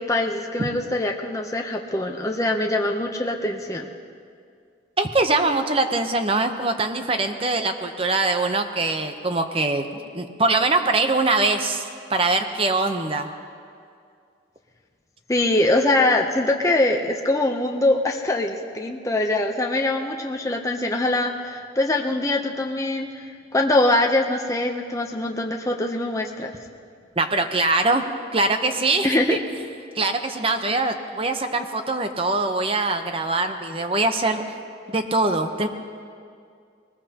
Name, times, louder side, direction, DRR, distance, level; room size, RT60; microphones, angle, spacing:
voice 1, 0.0-3.9 15.3-23.3 23.5-26.5 29.0-29.4, left 2 dB, 15° left, 2 dB, 0.7 m, -23 dB
voice 2, 5.0-13.3 27.2-28.0 28.3-29.4 30.0-34.4 34.9-35.7, right 2 dB, 30° right, 7 dB, 0.8 m, -23 dB
22.0 x 20.0 x 2.9 m, 2.3 s
head